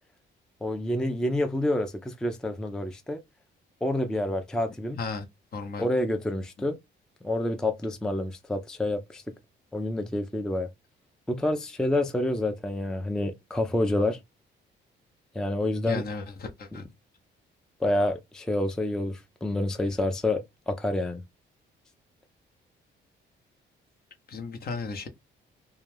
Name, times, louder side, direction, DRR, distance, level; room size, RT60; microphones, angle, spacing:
voice 1, 0.6-3.2 3.8-5.0 5.8-6.8 7.2-9.3 9.7-10.7 11.3-14.2 15.3-16.0 17.8-21.2, left 1 dB, 5° left, 0.4 m, -28 dB
voice 2, 5.5-5.9 6.6-6.7 15.9-16.8 24.3-25.1, left 4 dB, 50° left, 0.7 m, -35 dB
2.3 x 2.2 x 3.1 m
cardioid pair, 90°, 20 cm